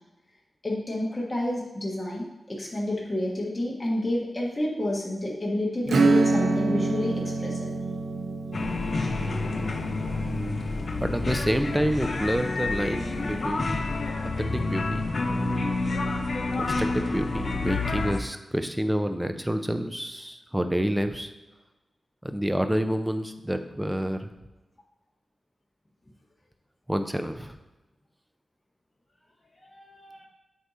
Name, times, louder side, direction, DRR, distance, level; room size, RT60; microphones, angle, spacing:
voice 1, 0.6-7.7 29.6-30.3, left 1 dB, 25° left, -4 dB, 1.3 m, -30 dB
Acoustic guitar / Strum, 5.9-12.1, right 3 dB, 90° right, 0.5 m, -27 dB
sound 1, 8.5-18.2, left 3 dB, 60° left, 0.6 m, -29 dB
voice 2, 11.0-13.8 14.2-15.7 16.5-21.3 22.2-24.3 26.9-27.5, equal, 10° right, 8 dB, 0.5 m, -28 dB
8.0 x 2.8 x 4.9 m, 1.0 s
wide cardioid pair, 75°, 0 cm